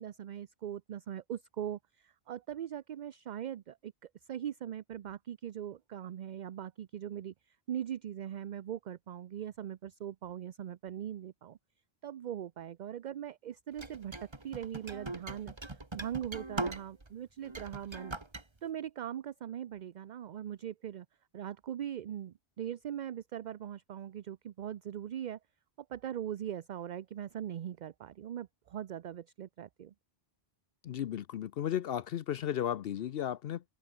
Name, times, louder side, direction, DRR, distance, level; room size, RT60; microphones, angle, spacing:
voice 1, 0.0-3.9 4.3-7.3 7.7-11.6 12.0-15.5 15.9-18.1 18.6-21.1 21.3-25.4 25.9-29.9, right 10 dB, 55° right, 0.6 m, -40 dB
sound 1, 13.8-17.1 17.4-18.4, right 2 dB, 25° right, 1.7 m, -40 dB
voice 2, 30.8-33.6, left 10 dB, 70° left, 0.8 m, -34 dB
omnidirectional pair, 1.0 m